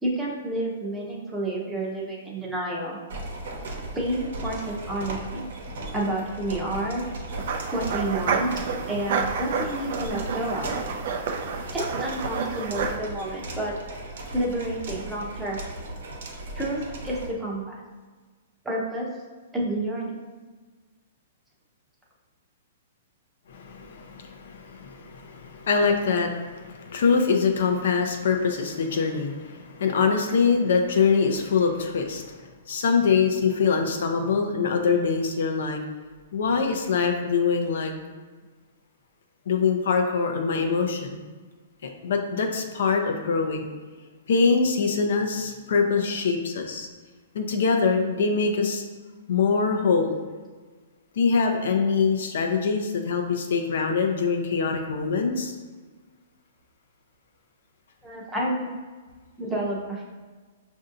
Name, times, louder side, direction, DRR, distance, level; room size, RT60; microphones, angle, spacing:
voice 1, 0.0-3.0 3.9-5.5 5.9-7.0 7.7-8.5 8.9-10.7 11.7-13.7 14.3-15.6 16.5-17.8 18.6-19.1 19.5-20.2 58.0-58.7 59.4-60.0, right 1 dB, 10° right, -4 dB, 0.7 m, -29 dB
sound 1, 3.1-17.3, right 1 dB, 75° right, 0.8 m, -37 dB
sound 2, 7.4-13.0, right 5 dB, 55° right, 0.4 m, -30 dB
voice 2, 23.5-35.8 36.3-37.9 39.5-41.2 41.8-43.7 44.3-46.9 47.3-48.8 49.3-50.1 51.2-55.5, left 5 dB, 70° left, 3 dB, 0.5 m, -24 dB
5.4 x 2.6 x 2.5 m, 1.4 s
hypercardioid pair, 150°, 0 cm